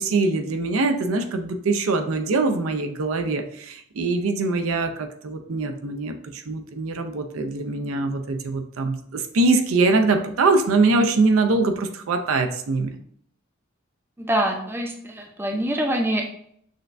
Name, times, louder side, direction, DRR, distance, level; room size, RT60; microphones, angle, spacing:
voice 1, 0.0-13.0, right 3 dB, 85° right, 6 dB, 0.5 m, -23 dB
voice 2, 14.2-16.3, right 1 dB, 10° right, 2 dB, 0.4 m, -25 dB
6.3 x 2.2 x 2.5 m, 0.66 s
head